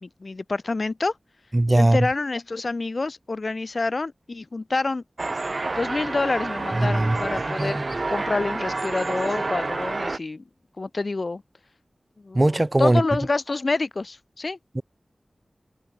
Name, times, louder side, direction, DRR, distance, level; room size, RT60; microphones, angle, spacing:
voice 1, 0.0-1.1 1.7-5.0 5.7-7.8 8.1-10.4 10.8-11.4 12.2-12.5 12.8-14.6, left 3 dB, 55° left, 2.8 m, -27 dB
voice 2, 1.5-2.1 6.7-7.2 7.6-7.8 12.3-13.0 14.8-14.9, right 1 dB, 30° right, 3.9 m, -20 dB
sound 1, 5.2-10.2, right 3 dB, 50° right, 3.4 m, -29 dB
open air
wide cardioid pair, 75°, 0 cm